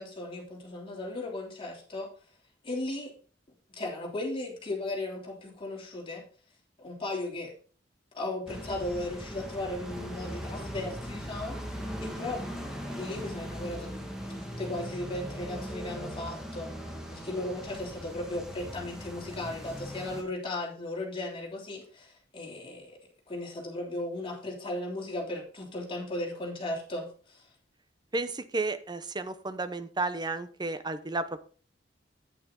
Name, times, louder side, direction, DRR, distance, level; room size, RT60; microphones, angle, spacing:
voice 1, 0.0-2.1 2.6-3.1 3.7-6.2 6.8-7.5 8.1-11.6 12.0-12.4 12.9-23.0 23.3-27.5, left 2 dB, 30° left, -1 dB, 3.3 m, -36 dB
sound 1, 8.5-20.2, equal, 5° right, 1.8 m, -39 dB
voice 2, 28.1-31.4, right 3 dB, 25° right, 11 dB, 0.8 m, -32 dB
9.3 x 8.6 x 3.9 m, 0.41 s
head